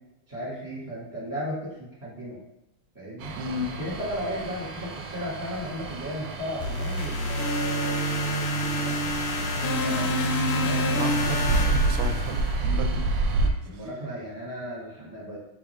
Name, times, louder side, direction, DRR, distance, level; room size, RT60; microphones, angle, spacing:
voice 1, 0.3-2.4 2.9-3.4 3.7-11.5 13.6-15.4, equal, 10° right, -6 dB, 1.2 m, -36 dB
sound 1, 3.2-13.5, right 2 dB, 70° right, 1.2 m, -30 dB
voice 2, 3.4-3.8 11.0-13.1, right 1 dB, 90° right, 6 dB, 1.5 m, -33 dB
sound 2, 6.6-12.8, equal, 80° left, 1.5 m, -27 dB
4.3 x 3.7 x 3.2 m, 0.87 s
omnidirectional pair, 2.4 m